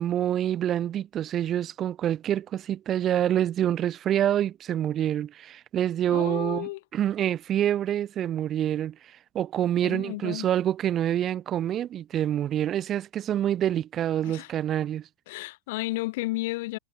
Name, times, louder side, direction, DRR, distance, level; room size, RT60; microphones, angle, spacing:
voice 1, 0.0-15.1, right 11 dB, 30° right, 1.1 m, -27 dB
voice 2, 6.1-6.8 9.8-10.5 14.2-14.5 15.3-16.8, left 20 dB, 50° left, 0.4 m, -32 dB
figure-of-eight pair, 90°, 0 cm